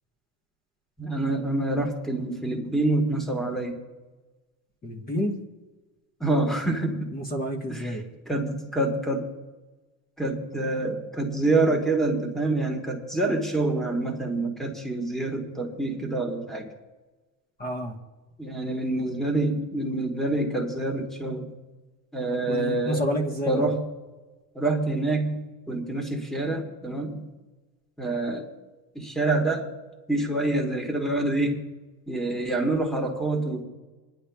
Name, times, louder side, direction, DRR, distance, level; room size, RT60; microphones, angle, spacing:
voice 1, 1.0-3.8 6.2-7.1 7.7-8.0 8.3-9.3 10.2-16.7 18.4-21.5 22.1-23.1 23.4-23.9 24.5-27.2 28.0-28.5 28.9-29.7 30.1-31.6 32.1-33.6, right 2 dB, ahead, 3 dB, 1.3 m, -26 dB
voice 2, 4.8-5.4 7.1-8.1 17.6-18.0 22.5-23.7, equal, 25° left, 2 dB, 1.1 m, -29 dB
27.0 x 10.0 x 2.3 m, 1.2 s
cardioid pair, 160°, 37 cm